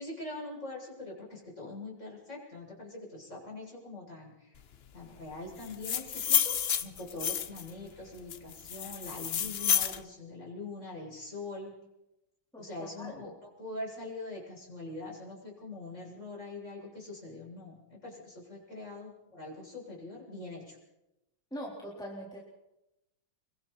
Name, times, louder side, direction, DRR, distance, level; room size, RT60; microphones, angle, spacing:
voice 1, 0.0-4.6 4.9-11.7 12.6-20.8, left 2 dB, 35° left, -3 dB, 7.7 m, -43 dB
sound 1, 5.6-7.7 8.3-10.0, left 8 dB, 85° left, 0.5 m, -30 dB
voice 2, 12.5-13.2 21.5-22.4, equal, ahead, -4 dB, 4.2 m, -42 dB
26.0 x 23.5 x 4.4 m, 0.92 s
omnidirectional pair, 2.3 m